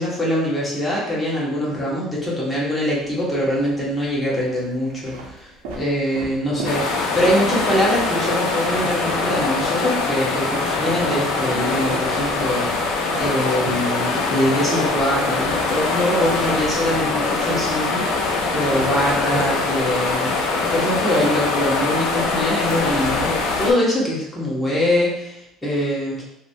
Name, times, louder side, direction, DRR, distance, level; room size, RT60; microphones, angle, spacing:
voice 1, 0.0-26.2, equal, 10° left, -6 dB, 1.3 m, -23 dB
sound 1, 3.0-3.7 4.4-9.5 9.8-16.1 16.4-20.1, right 3 dB, 75° right, 0.7 m, -35 dB
sound 2, 6.6-23.7, left 3 dB, 75° left, 0.5 m, -23 dB
3.0 x 2.1 x 2.8 m, 0.82 s
supercardioid pair, 80°, 0 cm